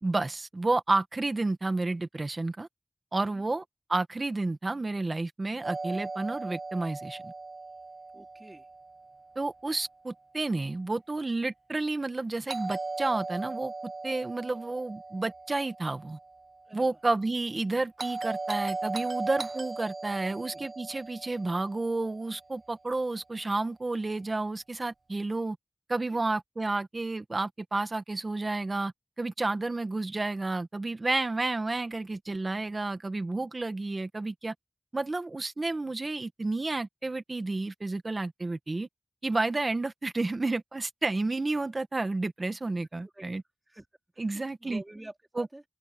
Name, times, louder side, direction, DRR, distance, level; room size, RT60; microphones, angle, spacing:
voice 1, 0.0-2.7 3.1-3.6 3.9-7.3 9.3-16.2 16.7-25.6 25.9-28.9 29.2-34.5 34.9-38.9 39.2-43.4 44.2-44.8 45.4-45.5, right 2 dB, 65° right, 1.6 m, -31 dB
Doorbell, 5.6-9.6 12.5-16.7 18.0-22.4, right 3 dB, 85° right, 0.6 m, -38 dB
voice 2, 8.1-8.7 16.6-17.0 20.1-20.7 26.0-26.2 43.0-43.4 43.7-43.9 44.1-45.6, right 1 dB, 35° right, 2.8 m, -49 dB
open air
wide cardioid pair, 45°, 0 cm